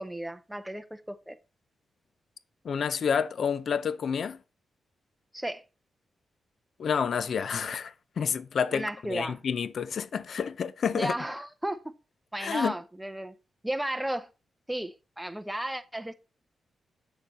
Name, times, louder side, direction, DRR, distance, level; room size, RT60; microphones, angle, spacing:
voice 1, 0.0-1.4 5.3-5.6 8.7-9.4 10.9-11.8 12.3-13.3 13.6-14.3 14.7-16.1, right 1 dB, 5° right, 0.7 m, -34 dB
voice 2, 2.6-4.4 6.8-11.1 12.4-12.7, left 7 dB, 60° left, 0.5 m, -29 dB
7.9 x 6.6 x 4.1 m
wide cardioid pair, 135°, 0 cm